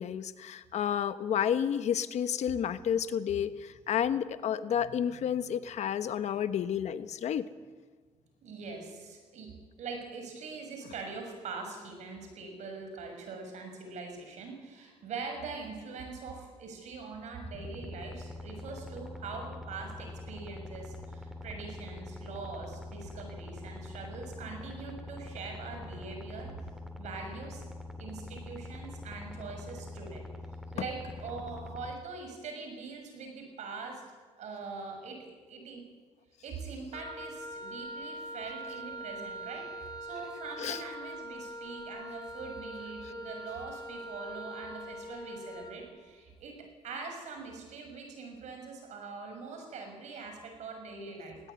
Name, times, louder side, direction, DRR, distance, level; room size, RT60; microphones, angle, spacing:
voice 1, 0.0-7.4 40.6-40.8, left 9 dB, 75° left, 12 dB, 1.1 m, -31 dB
voice 2, 4.7-5.2 8.4-26.6 27.0-27.6 28.0-30.2 30.7-34.0 34.4-35.9 36.4-46.6 46.8-51.4, right 4 dB, 80° right, 4 dB, 6.7 m, -43 dB
sound 1, 17.4-31.9, left 2 dB, 5° right, 2.4 m, -44 dB
Wind instrument woodwind instrument, 36.9-45.8, right 1 dB, 35° left, 3.6 m, -42 dB
19.0 x 18.5 x 9.6 m, 1.4 s
cardioid pair, 85°, 12 cm